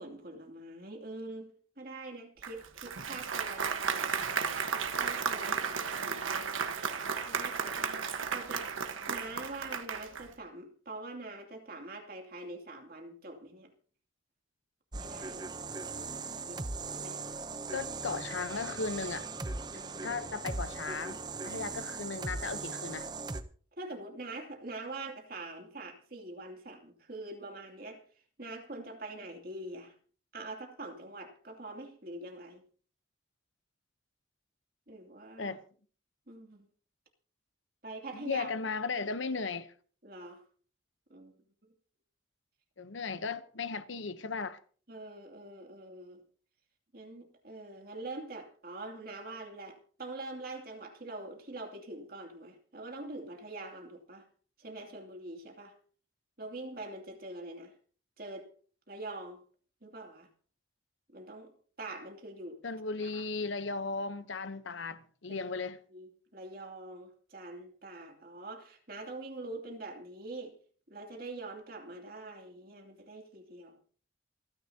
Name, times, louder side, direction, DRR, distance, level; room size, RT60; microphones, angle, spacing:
voice 1, 0.0-1.5 1.8-4.1 4.7-6.7 7.2-7.9 8.3-8.7 9.1-13.7 15.0-15.5 15.8-16.6 16.9-17.2 19.7-20.2 21.5-21.6 23.8-28.0 28.4-29.9 30.3-32.6 34.9-35.5 36.3-36.7 37.8-38.5 40.0-40.4 41.1-41.3 44.9-46.2 46.9-54.3 54.6-55.7 56.4-57.7 58.2-58.5 58.9-59.4 59.8-60.3 61.1-62.6 63.0-63.2 65.3-65.5 65.9-70.6 70.9-73.8, right 2 dB, 50° right, 2.7 m, -44 dB
Applause, 2.4-10.3, right 6 dB, 85° right, 1.3 m, -34 dB
sound 1, 14.9-23.4, right 3 dB, 20° right, 0.6 m, -39 dB
voice 2, 17.7-19.3 20.0-23.1 35.4-35.6 38.1-39.7 42.8-44.6 62.6-65.8, left 4 dB, 70° left, 0.9 m, -36 dB
28.0 x 10.0 x 2.8 m
head